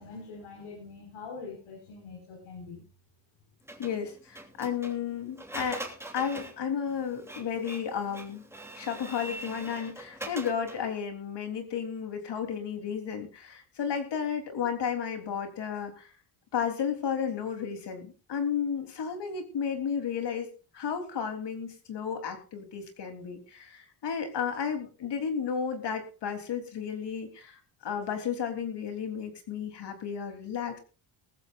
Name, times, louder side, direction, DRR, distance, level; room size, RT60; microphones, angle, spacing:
voice 1, 0.0-2.8, left 4 dB, 80° left, 0 dB, 5.2 m, -43 dB
Printer, 3.7-10.9, right 1 dB, 5° right, 3.0 m, -43 dB
voice 2, 3.8-5.8 6.1-8.4 8.7-16.1 16.5-20.5 20.7-30.8, left 7 dB, 60° left, 6 dB, 3.5 m, -33 dB
20.0 x 14.5 x 2.5 m, 0.35 s
cardioid pair, 120°, 48 cm